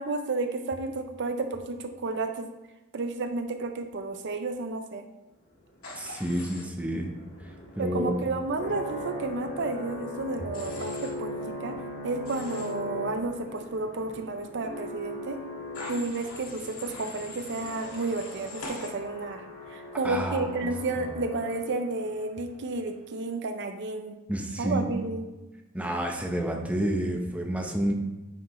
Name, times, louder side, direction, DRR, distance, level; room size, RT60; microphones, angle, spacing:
voice 1, 0.0-2.5 2.9-5.0 7.8-11.7 12.0-15.4 15.9-19.4 19.7-24.2 24.6-25.2, right 3 dB, 60° right, 7 dB, 0.6 m, -31 dB
Human voice / Train, 5.8-6.6 10.5-11.1 12.2-12.7 15.7-18.9, left 2 dB, 85° left, 1.8 m, -42 dB
sound 1, 5.8-22.0, left 1 dB, 50° left, 1.7 m, -40 dB
voice 2, 6.0-7.1 7.4-8.2 20.0-20.7 21.0-21.2 24.3-25.1 25.7-27.9, right 1 dB, 5° right, 1 dB, 0.8 m, -30 dB
9.1 x 4.9 x 3.1 m, 1.1 s
head